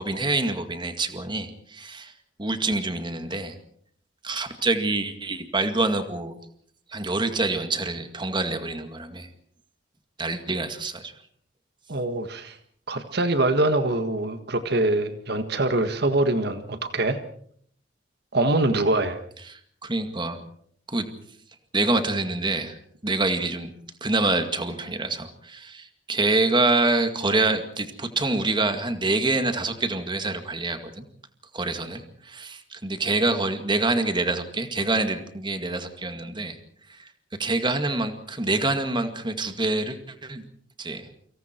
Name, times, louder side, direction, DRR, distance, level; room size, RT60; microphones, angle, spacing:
voice 1, 0.0-2.1 2.4-3.6 4.2-6.4 6.9-9.3 10.2-11.1 19.5-20.4 20.9-21.1 21.7-22.8 23.0-23.7 24.0-31.0 31.5-36.6 36.9-37.1 37.4-40.4 40.8-41.1, right 2 dB, 25° right, 8 dB, 2.1 m, -26 dB
voice 2, 11.9-12.6 12.9-17.2 18.3-19.2, right 2 dB, 60° right, 9 dB, 1.7 m, -24 dB
29.0 x 25.5 x 4.6 m, 0.62 s
head